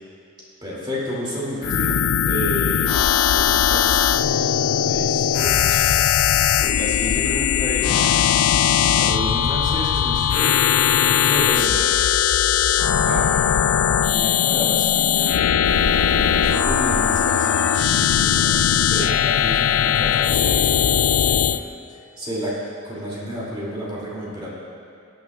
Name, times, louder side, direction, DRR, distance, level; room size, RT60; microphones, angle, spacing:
voice 1, 0.6-4.4 4.7-5.9 6.3-8.1 8.9-10.5 10.9-11.8 13.1-13.3 14.1-15.4 16.1-21.6 21.9-22.5 22.8-24.5, equal, 25° right, -7 dB, 2.6 m, -31 dB
sound 1, 1.6-21.6, left 9 dB, 80° left, 0.4 m, -19 dB
Meow, 15.6-20.3, left 1 dB, 55° left, 2.7 m, -32 dB
18.5 x 9.2 x 2.4 m, 2.5 s
head